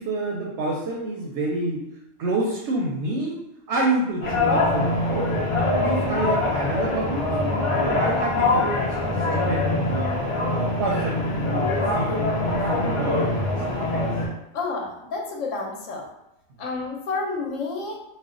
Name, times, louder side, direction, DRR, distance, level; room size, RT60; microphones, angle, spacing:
voice 1, 0.0-1.9 2.2-3.4 3.7-5.4 5.8-7.2 7.8-10.2 10.5-12.1 12.5-13.3 13.7-14.0, right 2 dB, 65° right, -2 dB, 0.8 m, -28 dB
sound 1, 4.2-14.3, left 2 dB, 50° left, 0.3 m, -23 dB
voice 2, 14.5-16.1 16.6-18.0, left 3 dB, 70° left, 0 dB, 0.9 m, -30 dB
2.4 x 2.2 x 3.6 m, 0.85 s
omnidirectional pair, 1.4 m